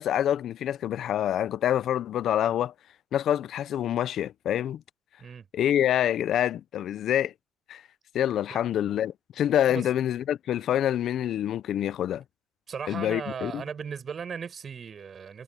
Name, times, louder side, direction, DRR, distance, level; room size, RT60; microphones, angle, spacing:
voice 1, 0.0-2.7 3.1-4.8 5.5-7.3 7.7-7.8 8.1-12.2 12.9-13.6, left 11 dB, 60° left, 0.5 m, -26 dB
voice 2, 12.7-15.4, right 6 dB, 35° right, 7.9 m, -37 dB
cardioid pair, 140°, 0 cm